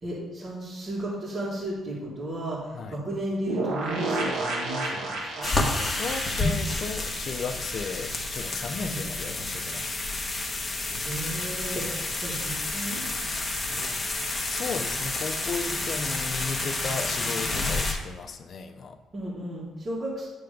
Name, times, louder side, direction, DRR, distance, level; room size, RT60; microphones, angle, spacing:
voice 1, 0.0-5.5 8.8-9.0 11.0-13.1 13.6-14.0 19.1-20.3, right 1 dB, 35° right, -8 dB, 2.0 m, -34 dB
sound 1, 3.5-8.1 8.4-8.5 8.7-8.8, right 2 dB, 80° right, 1.7 m, -32 dB
sound 2, 5.4-17.9, left 2 dB, 25° left, 1.1 m, -30 dB
voice 2, 5.8-10.0 14.3-19.0, left 5 dB, 50° left, 7 dB, 0.6 m, -35 dB
9.2 x 3.5 x 5.1 m, 1.2 s
cardioid pair, 115°, 0 cm